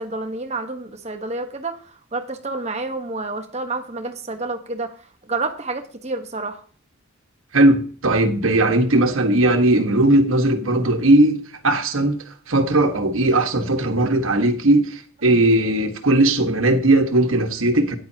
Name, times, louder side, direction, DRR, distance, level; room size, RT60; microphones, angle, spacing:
voice 1, 0.0-4.9 5.2-6.6, right 3 dB, 30° right, 1.2 m, -29 dB
voice 2, 7.5-11.4 11.6-18.0, right 1 dB, 75° right, 1.5 m, -18 dB
13.5 x 10.0 x 2.9 m
head